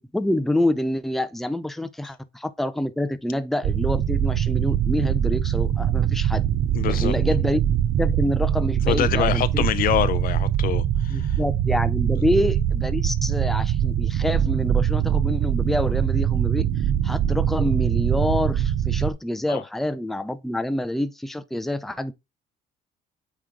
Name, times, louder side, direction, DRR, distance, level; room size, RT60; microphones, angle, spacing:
voice 1, 0.1-6.5 6.9-7.6 8.0-9.7 11.1-16.6 17.0-22.1, left 1 dB, ahead, 0.6 m, -27 dB
sound 1, 3.6-19.1, right 10 dB, 60° right, 0.8 m, -23 dB
voice 2, 6.7-7.1 8.9-11.4 19.5-19.6, left 12 dB, 60° left, 0.6 m, -25 dB
8.7 x 3.1 x 3.7 m
cardioid pair, 110°, 17 cm